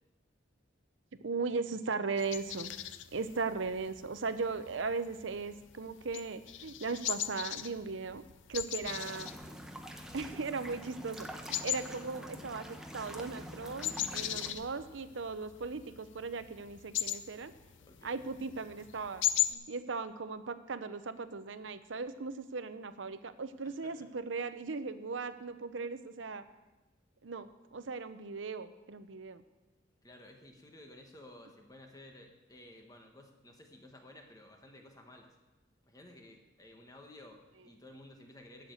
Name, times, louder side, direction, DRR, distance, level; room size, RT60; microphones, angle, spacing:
voice 1, 1.2-2.7 3.1-8.2 8.5-9.3 10.1-17.5 18.0-19.2 19.5-26.4 27.2-29.4, right 4 dB, 90° right, 11 dB, 0.7 m, -38 dB
sound 1, 2.2-19.5, left 12 dB, 80° left, 0.5 m, -39 dB
sound 2, 8.8-14.5, equal, 5° right, 0.9 m, -46 dB
voice 2, 17.8-18.3 23.6-24.1 30.0-35.3 35.9-38.7, left 1 dB, 20° left, 3 dB, 1.5 m, -54 dB
11.5 x 6.7 x 7.9 m, 1.2 s
head